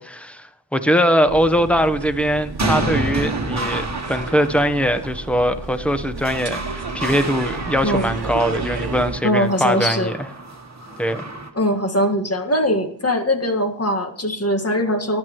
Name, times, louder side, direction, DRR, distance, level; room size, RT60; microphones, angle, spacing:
voice 1, 0.0-10.3 11.0-11.2, equal, 5° left, 1.0 m, -21 dB
sound 1, 1.3-9.2, right 4 dB, 60° right, 1.2 m, -31 dB
sound 2, 2.2-11.5, right 2 dB, 40° right, 1.5 m, -30 dB
voice 2, 9.2-10.1 11.5-15.2, equal, 35° left, 1.8 m, -21 dB
19.5 x 10.5 x 3.1 m
wide cardioid pair, 60°, 43 cm